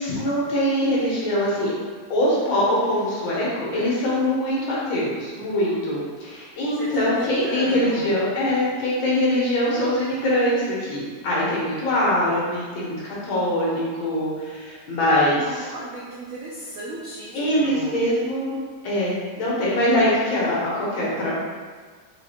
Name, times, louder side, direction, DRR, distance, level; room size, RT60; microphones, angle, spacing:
voice 1, 0.0-1.7 2.1-15.7 17.3-18.5 18.8-21.4, left 1 dB, 90° left, -6 dB, 2.0 m, -23 dB
voice 2, 6.8-8.1 15.3-18.1, right 2 dB, 90° right, -5 dB, 0.7 m, -34 dB
4.0 x 3.9 x 2.8 m, 1.5 s
omnidirectional pair, 2.1 m